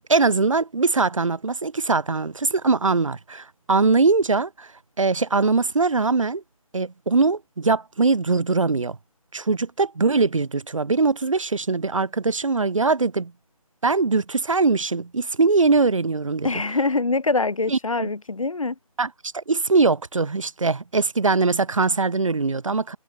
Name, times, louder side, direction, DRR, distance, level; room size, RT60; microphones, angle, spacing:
voice 1, 0.1-4.7 5.0-6.4 6.7-9.0 9.3-13.3 13.8-16.5 17.7-18.1 19.0-23.0, right 4 dB, 60° right, 2.0 m, -21 dB
voice 2, 16.4-18.8, left 3 dB, 65° left, 7.1 m, -24 dB
figure-of-eight pair, 160°, 19 cm